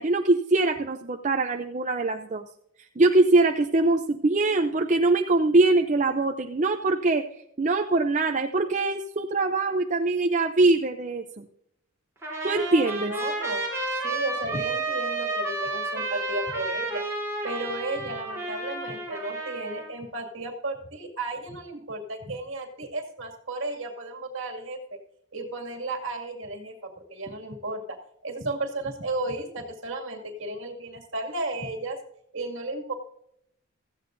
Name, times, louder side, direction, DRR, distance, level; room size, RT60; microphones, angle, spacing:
voice 1, 0.0-2.4 2.8-7.2 7.6-11.4 12.4-13.1, right 2 dB, 35° right, 5 dB, 0.5 m, -23 dB
Trumpet, 12.2-19.9, right 2 dB, 10° right, 3.7 m, -31 dB
voice 2, 13.0-13.7 14.0-17.0 17.4-25.0 25.3-32.0 32.3-32.9, right 2 dB, 60° right, 3 dB, 2.3 m, -34 dB
16.5 x 14.5 x 2.6 m, 0.73 s
head